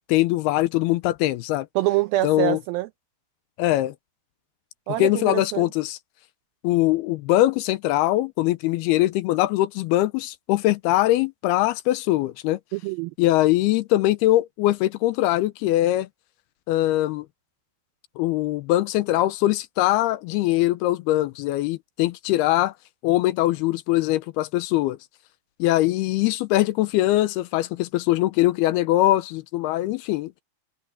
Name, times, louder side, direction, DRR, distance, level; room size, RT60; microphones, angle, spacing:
voice 1, 0.1-1.7 2.2-2.6 3.6-3.9 5.0-6.0 6.6-12.6 13.2-16.1 16.7-17.3 18.2-22.7 23.0-25.0 25.6-30.3, left 16 dB, 80° left, 2.6 m, -22 dB
voice 2, 1.8-2.9 4.9-5.7 12.7-13.1, right 17 dB, 85° right, 2.1 m, -25 dB
omnidirectional pair, 4.8 m